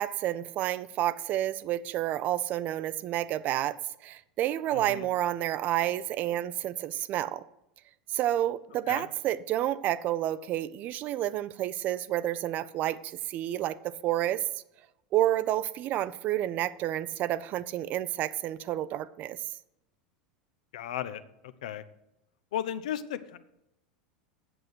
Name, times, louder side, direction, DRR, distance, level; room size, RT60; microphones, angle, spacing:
voice 1, 0.0-3.8 4.0-7.4 8.1-14.4 15.1-19.4, right 13 dB, 40° right, 0.4 m, -30 dB
voice 2, 4.7-5.1 8.9-9.1 20.7-21.2 21.6-21.8 22.5-23.4, left 10 dB, 65° left, 0.6 m, -35 dB
7.8 x 7.7 x 6.1 m
figure-of-eight pair, 80°, 4 cm